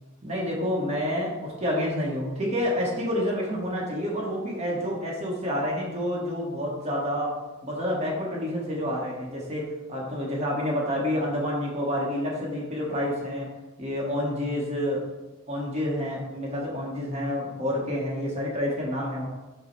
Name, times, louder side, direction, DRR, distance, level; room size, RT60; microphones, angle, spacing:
voice 1, 0.2-7.3 7.6-13.5 13.8-15.0 15.5-19.3, left 1 dB, 30° right, -4 dB, 0.9 m, -28 dB
5.4 x 2.0 x 4.2 m, 1.1 s
head